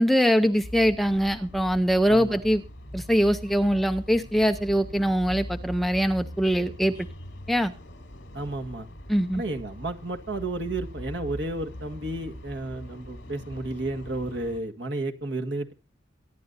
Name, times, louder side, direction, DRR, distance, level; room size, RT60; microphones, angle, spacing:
voice 1, 0.0-2.6 2.9-6.9 7.5-7.7 9.1-9.4, equal, ahead, 7 dB, 0.6 m, -23 dB
sound 1, 0.6-14.6, equal, 65° left, 3.3 m, -42 dB
voice 2, 2.1-2.4 8.3-8.9 9.3-15.7, right 2 dB, 65° right, 4 dB, 1.7 m, -32 dB
23.0 x 10.5 x 2.7 m, 0.31 s
head